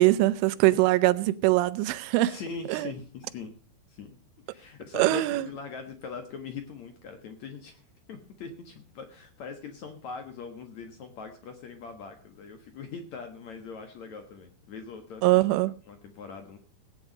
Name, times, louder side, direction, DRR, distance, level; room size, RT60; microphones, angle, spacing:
voice 1, 0.0-2.3 2.7-2.9 4.9-5.5 15.2-15.7, right 18 dB, 85° right, 3.2 m, -22 dB
voice 2, 2.3-3.6 3.9-4.2 4.5-15.4 15.9-16.6, left 5 dB, 80° left, 1.6 m, -41 dB
18.0 x 9.4 x 5.3 m
omnidirectional pair, 5.6 m